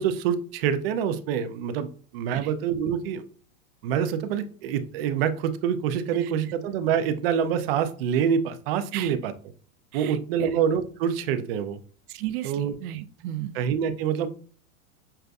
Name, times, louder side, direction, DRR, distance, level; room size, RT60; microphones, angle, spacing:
voice 1, 0.0-3.2 3.8-9.3 9.9-11.8 12.4-12.7 13.5-14.3, right 8 dB, 45° right, 11 dB, 0.5 m, -26 dB
voice 2, 9.9-10.6 12.1-13.5, right 13 dB, 90° right, 9 dB, 0.6 m, -35 dB
6.6 x 2.5 x 2.2 m, 0.42 s
supercardioid pair, 160°, 43 cm